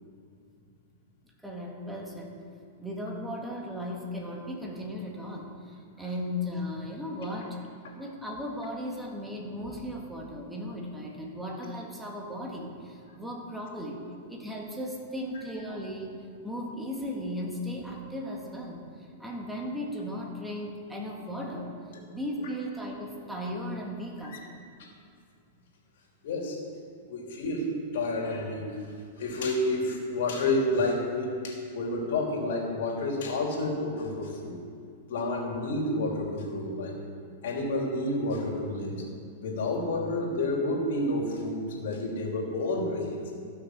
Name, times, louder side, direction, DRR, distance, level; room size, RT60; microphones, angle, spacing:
voice 1, 1.4-2.4 2.8-7.6 8.0-14.0 14.3-16.2 16.4-21.8 22.1-24.6, left 1 dB, 5° right, -2 dB, 2.0 m, -36 dB
voice 2, 26.2-26.6 27.0-28.7 29.2-34.6 35.1-37.0 37.4-39.1 39.4-43.3, left 2 dB, 70° left, 0 dB, 2.9 m, -30 dB
14.5 x 6.6 x 6.1 m, 2.4 s
hypercardioid pair, 135°, 0 cm